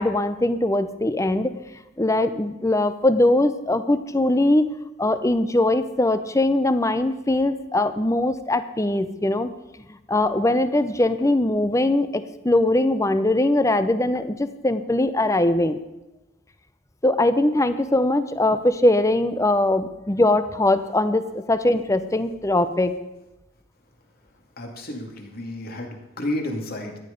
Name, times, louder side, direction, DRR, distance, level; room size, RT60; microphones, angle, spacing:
voice 1, 0.0-1.5 2.0-4.6 5.0-9.5 10.1-15.8 17.0-23.0, left 1 dB, 15° left, 11 dB, 0.7 m, -21 dB
voice 2, 24.6-27.0, left 1 dB, 50° left, 2 dB, 2.4 m, -31 dB
14.0 x 11.0 x 5.3 m, 0.96 s
head